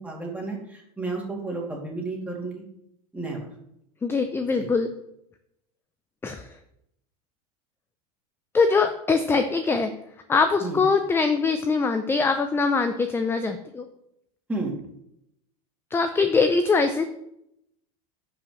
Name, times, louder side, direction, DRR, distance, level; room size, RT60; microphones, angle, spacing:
voice 1, 0.0-2.6 3.1-3.4 4.6-4.7 10.6-10.8 14.5-14.7, right 3 dB, 10° right, -2 dB, 2.6 m, -32 dB
voice 2, 4.0-4.9 6.2-6.6 8.5-9.9 10.3-13.9 15.9-17.0, left 4 dB, 10° left, 8 dB, 0.5 m, -22 dB
11.0 x 5.2 x 3.1 m, 0.79 s
hypercardioid pair, 110°, 18 cm